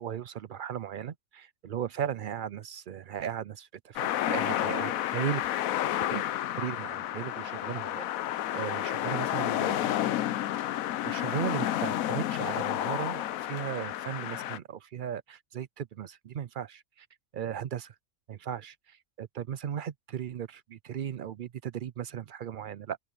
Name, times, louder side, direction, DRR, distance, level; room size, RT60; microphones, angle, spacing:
voice 1, 0.0-4.0 4.3-5.5 5.9-6.2 6.6-8.0 8.5-10.0 11.0-17.1 17.3-17.9 18.3-23.0, right 9 dB, 65° right, 0.5 m, -36 dB
sound 1, 4.0-14.6, left 13 dB, 85° left, 1.1 m, -31 dB
open air
omnidirectional pair, 1.4 m